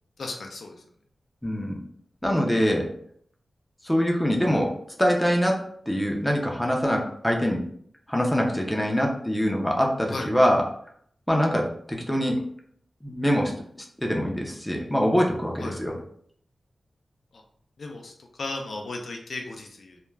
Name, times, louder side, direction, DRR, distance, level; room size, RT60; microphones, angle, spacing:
voice 1, 0.2-0.7 10.1-10.3 15.6-15.8 17.3-17.4 17.8-20.0, left 2 dB, 70° left, 2 dB, 0.4 m, -35 dB
voice 2, 1.4-1.7 2.2-2.9 3.9-4.7 5.0-7.6 8.1-10.6 11.3-11.7 12.1-12.4 13.0-13.5 14.0-15.9, equal, 5° left, 0 dB, 0.5 m, -23 dB
2.3 x 2.1 x 3.1 m, 0.64 s
wide cardioid pair, 110°, 0 cm